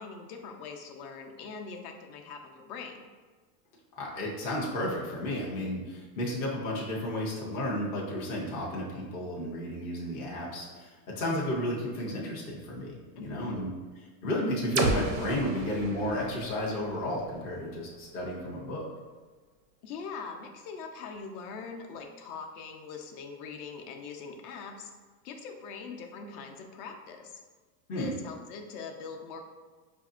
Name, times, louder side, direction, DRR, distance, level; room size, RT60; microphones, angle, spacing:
voice 1, 0.0-3.1 13.2-13.6 19.8-24.9 25.2-27.4 27.9-29.4, left 5 dB, 60° left, 3 dB, 0.7 m, -42 dB
voice 2, 4.0-13.7 14.2-18.9 27.9-28.1, left 1 dB, 20° left, -4 dB, 0.3 m, -32 dB
sound 1, 14.8-18.6, right 3 dB, 85° right, 0.7 m, -34 dB
5.0 x 2.6 x 2.4 m, 1.4 s
supercardioid pair, 135°, 49 cm